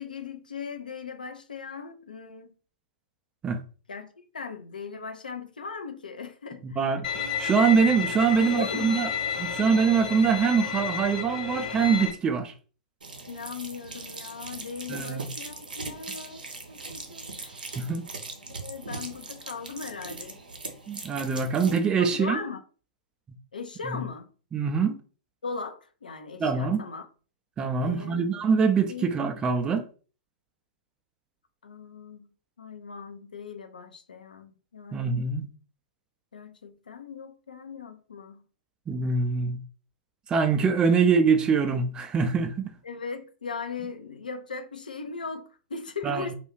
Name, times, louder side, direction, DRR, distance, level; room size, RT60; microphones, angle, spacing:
voice 1, 0.0-2.5 3.9-4.1 4.3-7.0 8.3-9.0 13.3-17.7 18.6-20.4 22.0-22.6 23.5-24.3 25.4-27.1 27.8-28.2 28.5-28.6 28.9-29.1 31.6-32.3 32.6-35.3 36.3-38.4 42.8-46.3, left 5 dB, 80° left, 0.5 m, -38 dB
voice 2, 6.6-7.0 7.4-9.1 9.4-12.5 14.9-15.3 17.8-18.1 20.9-22.4 23.9-24.0 24.5-25.0 26.4-26.8 27.6-29.9 34.9-35.5 38.9-39.6 40.3-42.7 46.0-46.3, right 5 dB, 20° right, 0.4 m, -24 dB
Bowed string instrument, 7.0-12.1, left 7 dB, 60° left, 1.1 m, -31 dB
sound 1, 13.0-21.8, right 3 dB, 80° right, 0.6 m, -40 dB
2.4 x 2.3 x 3.0 m
figure-of-eight pair, 105°, 5 cm